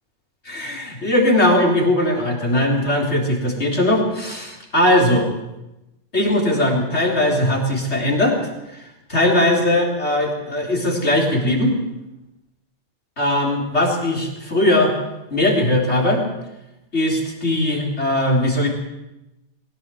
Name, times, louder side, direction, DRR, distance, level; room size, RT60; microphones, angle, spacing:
voice 1, 0.5-5.3 6.1-8.8 9.1-11.7 13.2-14.9 15.3-16.2 16.9-18.7, left 1 dB, 60° left, -1 dB, 4.3 m, -19 dB
21.5 x 16.5 x 7.7 m, 0.95 s
omnidirectional pair, 1.3 m